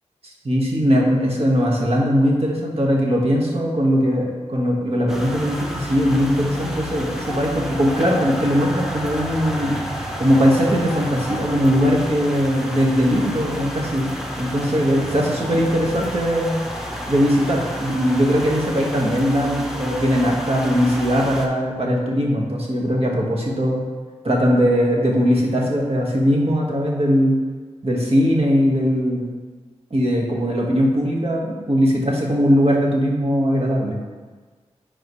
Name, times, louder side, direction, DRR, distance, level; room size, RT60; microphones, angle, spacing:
voice 1, 0.4-9.8 10.2-14.1 14.4-16.6 17.1-23.8 24.2-27.4 27.8-29.3 29.9-34.0, equal, 55° right, -2 dB, 1.6 m, -20 dB
sound 1, 5.1-21.5, equal, 5° right, 1.2 m, -31 dB
10.5 x 4.1 x 3.2 m, 1.4 s
cardioid pair, 40°, 12 cm